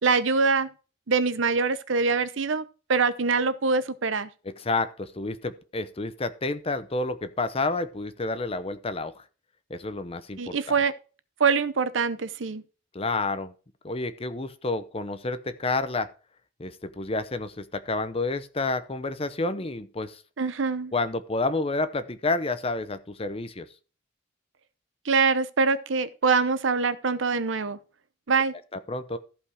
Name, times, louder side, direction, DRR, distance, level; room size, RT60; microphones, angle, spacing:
voice 1, 0.0-0.7 1.1-2.6 2.9-4.3 10.4-10.9 11.4-12.6 20.4-20.9 25.0-27.8 28.3-28.5, right 4 dB, 70° right, 0.7 m, -24 dB
voice 2, 4.4-9.2 9.7-10.6 12.9-13.5 13.8-16.1 16.6-20.2 20.9-23.7 28.7-29.2, left 3 dB, 30° left, 0.8 m, -29 dB
14.5 x 5.3 x 4.9 m
head